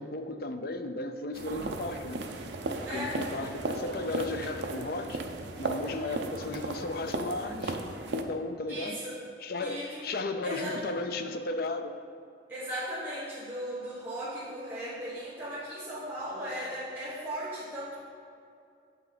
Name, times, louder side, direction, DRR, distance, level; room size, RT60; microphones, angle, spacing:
voice 1, 0.0-2.3 2.8-5.2 5.6-7.8 8.1-9.0 9.4-12.0, left 2 dB, 50° left, 8 dB, 0.5 m, -35 dB
sound 1, 1.3-8.2, right 2 dB, 65° right, 0.6 m, -35 dB
voice 2, 2.8-3.2 5.8-6.2 8.7-9.2 9.6-10.0 10.4-10.8 12.5-18.0, equal, 10° right, -10 dB, 1.2 m, -37 dB
8.1 x 5.9 x 4.0 m, 2.4 s
head